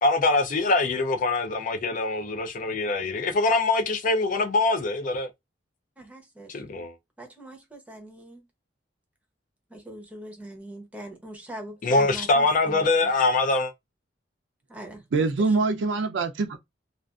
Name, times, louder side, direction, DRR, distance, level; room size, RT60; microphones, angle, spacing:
voice 1, 0.0-5.3 6.5-6.9 11.8-13.7, left 3 dB, 45° left, 0.4 m, -23 dB
voice 2, 6.0-6.6 7.2-8.4 9.7-12.8 14.7-15.3, right 1 dB, 10° right, 0.7 m, -42 dB
voice 3, 15.1-16.6, right 3 dB, 75° right, 0.4 m, -24 dB
2.4 x 2.4 x 2.3 m
head